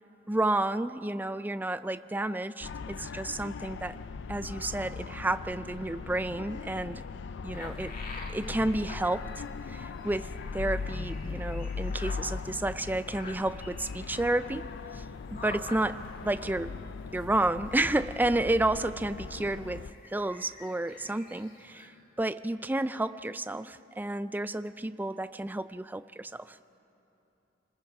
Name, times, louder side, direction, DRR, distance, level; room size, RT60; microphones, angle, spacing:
voice 1, 0.3-4.0 4.3-7.0 7.4-8.0 8.3-15.0 15.4-16.7 17.1-21.9 22.2-26.6, right 2 dB, 10° right, 13 dB, 0.4 m, -31 dB
sound 1, 2.6-19.9, left 4 dB, 65° left, 0.4 m, -39 dB
sound 2, 7.5-21.9, left 2 dB, 50° left, 2.1 m, -49 dB
27.0 x 20.5 x 4.8 m, 3.0 s
head